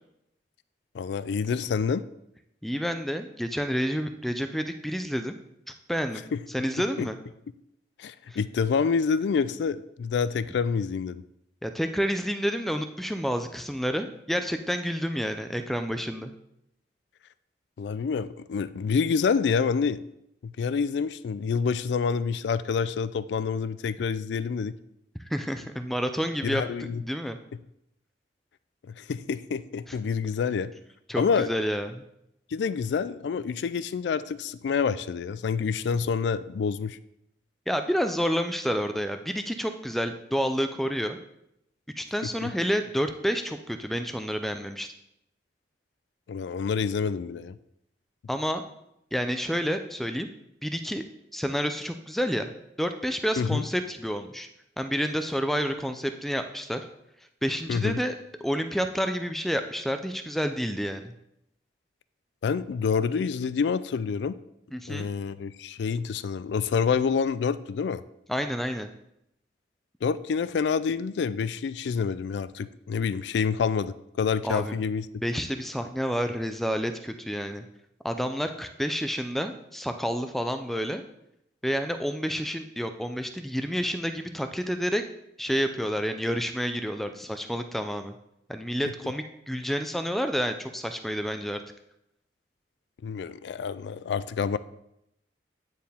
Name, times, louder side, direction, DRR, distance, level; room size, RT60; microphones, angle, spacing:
voice 1, 0.9-2.0 6.3-6.4 7.0-7.1 8.0-11.2 17.8-20.0 20.4-24.7 26.4-27.0 28.9-30.7 31.2-31.5 32.5-37.0 42.4-42.5 46.3-47.6 53.4-53.6 57.7-58.0 62.4-64.4 64.9-68.0 70.0-75.1 93.0-94.6, left 6 dB, 75° left, 15 dB, 0.3 m, -27 dB
voice 2, 2.6-5.4 5.9-6.2 6.5-7.2 8.3-8.4 11.6-16.3 25.3-26.6 27.0-27.4 31.1-32.0 37.7-41.2 42.0-44.9 48.3-48.6 49.1-50.3 50.6-51.0 51.3-52.5 52.8-54.5 54.8-56.8 57.4-58.2 58.4-61.1 64.7-65.1 68.3-68.9 74.4-74.8 75.2-77.6 78.0-81.0 81.6-85.0 85.4-88.2 88.5-91.6, equal, ahead, 7 dB, 0.3 m, -29 dB
9.3 x 4.5 x 3.5 m, 0.80 s
head